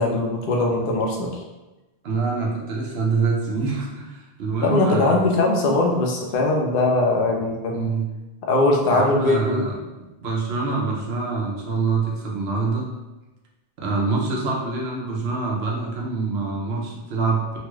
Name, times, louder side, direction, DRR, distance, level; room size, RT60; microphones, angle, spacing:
voice 1, 0.0-1.4 4.6-7.9 8.5-9.7, left 2 dB, 65° left, 0 dB, 0.7 m, -21 dB
voice 2, 2.0-5.2 7.7-8.1 8.9-9.8 10.2-12.9 13.8-17.6, right 4 dB, 75° right, -2 dB, 0.9 m, -25 dB
2.9 x 2.3 x 3.0 m, 1.1 s
omnidirectional pair, 1.1 m